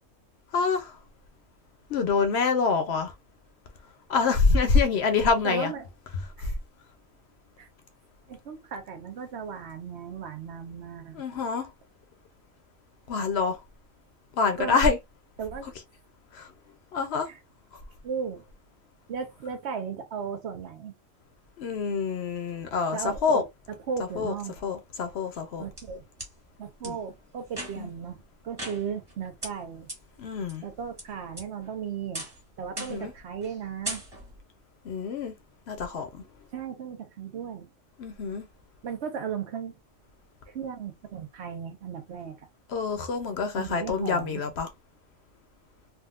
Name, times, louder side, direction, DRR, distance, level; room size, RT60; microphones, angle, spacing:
voice 1, 0.5-1.0 1.9-3.1 4.1-5.7 6.4-6.5 11.1-11.7 13.1-13.6 14.3-15.0 15.6-15.7 16.3-16.5 16.9-17.3 17.7-17.8 21.6-23.4 24.2-24.3 24.6-25.7 26.8-27.0 27.8-27.9 30.2-30.6 32.8-33.1 34.8-35.3 35.7-36.2 38.0-38.5 42.7-44.7, left 4 dB, 65° left, 0.8 m, -26 dB
voice 2, 5.4-5.9 6.4-6.6 7.6-7.7 8.3-11.2 14.6-14.8 15.4-15.7 17.3-17.4 18.0-18.4 19.1-20.9 22.9-24.6 25.6-26.0 26.6-29.9 30.6-32.3 32.6-34.0 36.5-37.7 38.8-39.8 40.5-42.5 43.6-44.5, right 7 dB, 65° right, 0.9 m, -36 dB
sound 1, 25.3-26.3 26.8-26.9 27.5-28.0 28.6-29.1 29.4-29.5 29.9-30.0 30.5-31.0 31.4-31.8 32.1-32.4 32.8-33.1 33.4-33.6 33.8-34.4, right 1 dB, 20° right, 1.5 m, -38 dB
3.6 x 2.3 x 2.3 m
omnidirectional pair, 1.3 m